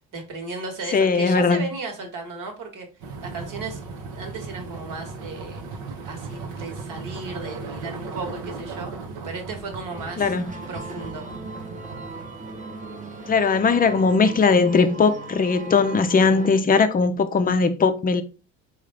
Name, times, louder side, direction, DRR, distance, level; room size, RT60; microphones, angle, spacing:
voice 1, 0.1-3.8 4.1-5.6 6.0-8.9 9.2-10.3 10.7-11.3, right 3 dB, 55° right, 1.3 m, -35 dB
voice 2, 0.9-1.7 10.2-10.4 13.3-18.2, left 4 dB, 25° left, 0.4 m, -19 dB
sound 1, 3.0-13.4, right 4 dB, 85° right, 0.9 m, -37 dB
sound 2, 9.9-16.6, right 3 dB, 20° right, 0.7 m, -39 dB
3.7 x 2.5 x 3.2 m
supercardioid pair, 85°, 37 cm